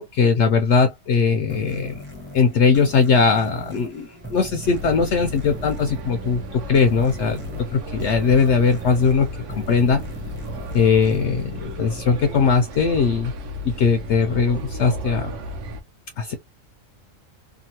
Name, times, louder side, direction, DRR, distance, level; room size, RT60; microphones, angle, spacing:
voice 1, 0.0-2.0 2.3-7.4 7.7-9.3 9.5-10.0 10.7-13.3 13.6-15.3 16.2-16.3, left 5 dB, 65° left, 0.8 m, -19 dB
sound 1, 1.5-12.7, right 1 dB, 10° right, 0.9 m, -39 dB
sound 2, 4.6-15.8, equal, 65° right, 1.0 m, -34 dB
2.9 x 2.3 x 2.8 m
omnidirectional pair, 1.4 m